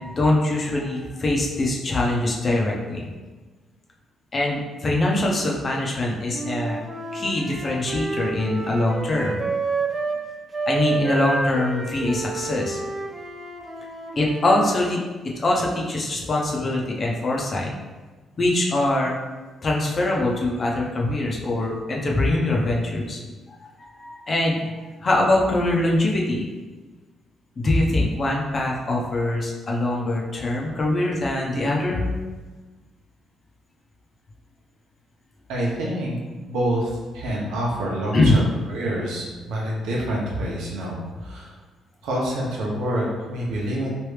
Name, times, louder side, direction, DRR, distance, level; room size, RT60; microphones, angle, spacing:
voice 1, 0.0-3.1 4.3-6.8 7.1-9.4 10.7-12.8 14.2-17.7 18.4-19.2 19.6-23.2 23.8-24.6 25.0-26.4 27.6-32.1 38.1-38.4, left 2 dB, 40° left, -2 dB, 0.7 m, -23 dB
Wind instrument woodwind instrument, 6.3-10.2 10.5-14.8, right 3 dB, 25° right, 0.4 m, -29 dB
voice 2, 35.5-36.2 36.5-38.4 38.7-41.5 42.0-43.9, right 1 dB, 90° right, -4 dB, 0.9 m, -27 dB
3.2 x 2.6 x 3.2 m, 1.3 s
cardioid pair, 90°, 0 cm